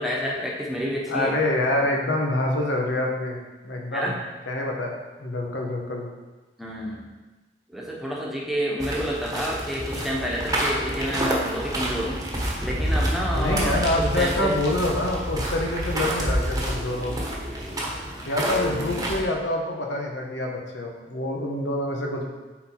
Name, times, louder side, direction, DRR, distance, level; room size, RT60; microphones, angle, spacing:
voice 1, 0.0-1.4 3.9-4.2 6.6-7.1 7.7-12.2 12.6-14.6 18.5-19.0, equal, ahead, -4 dB, 1.2 m, -29 dB
voice 2, 1.1-3.4 3.6-4.1 4.5-4.9 5.2-6.1 13.3-17.2 18.3-22.2, left 1 dB, 85° left, 0 dB, 1.2 m, -26 dB
sound 1, 8.8-19.2, right 1 dB, 20° right, 1.2 m, -28 dB
7.6 x 4.2 x 4.5 m, 1.2 s
head